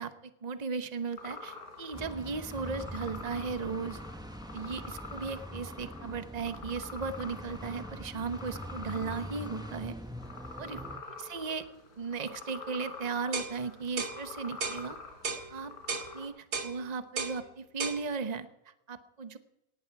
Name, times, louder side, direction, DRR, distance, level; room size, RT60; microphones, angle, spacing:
voice 1, 0.0-4.0 4.5-9.9 10.6-10.8 11.2-11.6 12.0-15.0 15.5-15.7 16.1-18.5 18.9-19.4, right 5 dB, 30° right, 10 dB, 0.9 m, -36 dB
sound 1, 1.2-16.3, left 4 dB, 85° left, 4.4 m, -46 dB
sound 2, 1.9-11.0, equal, 5° right, 0.8 m, -43 dB
sound 3, 13.3-13.5 14.0-14.2 14.6-14.8 15.2-15.5 15.9-16.1 16.5-16.7 17.2-17.4 17.8-18.0, right 4 dB, 80° right, 2.2 m, -34 dB
19.0 x 14.5 x 4.7 m, 0.90 s
omnidirectional pair, 1.6 m